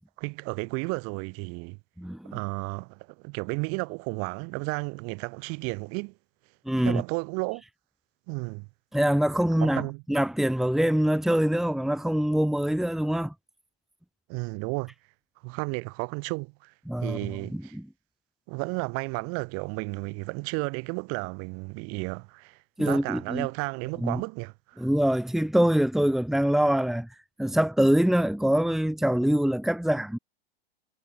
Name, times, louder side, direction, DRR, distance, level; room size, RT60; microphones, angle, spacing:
voice 1, 0.2-1.8 2.3-6.1 6.8-7.6 8.3-8.7 9.6-10.0 14.3-14.9 15.4-16.7 17.0-17.8 18.5-24.8, right 34 dB, 50° right, 5.3 m, -33 dB
voice 2, 2.0-2.4 6.7-7.0 8.9-13.3 16.9-17.8 22.8-23.5 24.0-24.2 24.8-27.1 27.4-30.2, equal, ahead, 2.2 m, -24 dB
hypercardioid pair, 120°, 31 cm